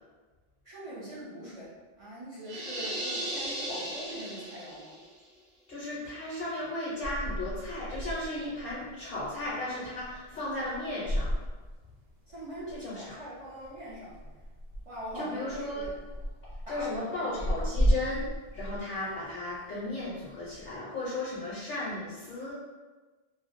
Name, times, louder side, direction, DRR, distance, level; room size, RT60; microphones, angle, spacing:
voice 1, 0.6-1.7 2.0-5.0 12.3-14.1 14.9-15.9 16.7-17.3, equal, 40° right, -9 dB, 0.5 m, -42 dB
sound 1, 2.5-5.0, right 1 dB, 65° right, 1.0 m, -36 dB
voice 2, 5.7-11.3 12.7-13.2 15.1-15.9 16.7-18.3 18.5-22.5, left 2 dB, 55° left, -8 dB, 0.8 m, -35 dB
sound 2, 7.0-20.8, equal, 90° right, 1.0 m, -35 dB
2.4 x 2.2 x 2.5 m, 1.3 s
omnidirectional pair, 1.2 m